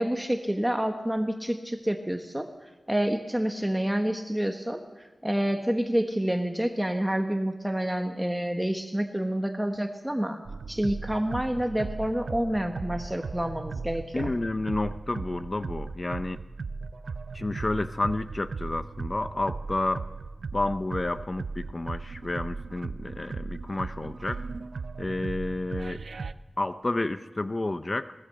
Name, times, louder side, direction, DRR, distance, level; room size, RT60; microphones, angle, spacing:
voice 1, 0.0-14.3, right 1 dB, 5° right, 5 dB, 1.3 m, -28 dB
sound 1, 10.4-26.3, right 4 dB, 70° right, 0.7 m, -37 dB
voice 2, 14.1-16.4 17.3-20.1 20.5-24.4 25.0-26.0 26.6-28.1, left 2 dB, 30° left, 11 dB, 0.6 m, -30 dB
21.5 x 19.5 x 7.8 m, 1.2 s
wide cardioid pair, 110°, 0 cm